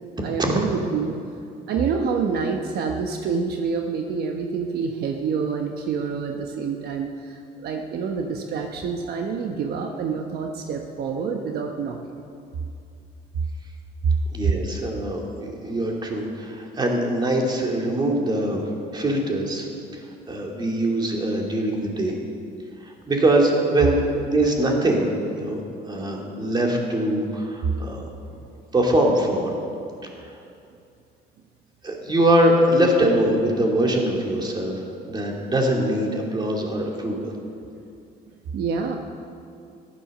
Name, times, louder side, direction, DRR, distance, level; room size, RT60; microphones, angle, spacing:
voice 1, 0.2-1.2 1.7-12.0 14.4-14.5 27.6-27.7 38.5-39.0, right 5 dB, 70° right, 3 dB, 1.1 m, -27 dB
voice 2, 14.3-18.6 18.9-19.7 20.3-22.1 22.8-25.1 25.4-25.6 25.9-28.1 28.7-29.5 30.2-30.4 31.8-37.3, right 1 dB, 25° right, 0 dB, 2.8 m, -22 dB
14.5 x 11.0 x 6.6 m, 2.5 s
cardioid pair, 110°, 17 cm